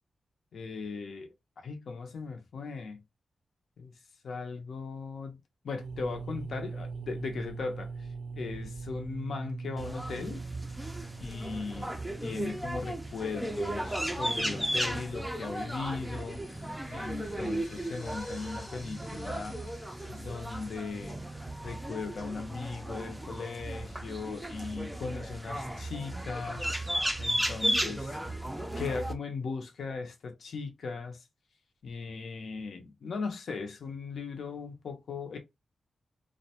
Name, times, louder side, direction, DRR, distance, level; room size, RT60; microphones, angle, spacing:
voice 1, 0.5-1.3 1.6-3.0 3.8-3.9 4.2-10.4 11.2-11.9 12.2-16.4 16.9-19.6 20.1-21.2 21.6-26.7 27.2-28.2 28.8-31.3 31.8-35.4, left 4 dB, 65° left, 0.5 m, -38 dB
sound 1, 5.8-13.5, right 4 dB, 85° right, 0.3 m, -41 dB
sound 2, 9.8-29.1, right 1 dB, 5° right, 0.4 m, -35 dB
sound 3, 15.9-22.7, left 1 dB, 20° left, 0.7 m, -56 dB
2.4 x 2.1 x 2.8 m
wide cardioid pair, 145°, 0 cm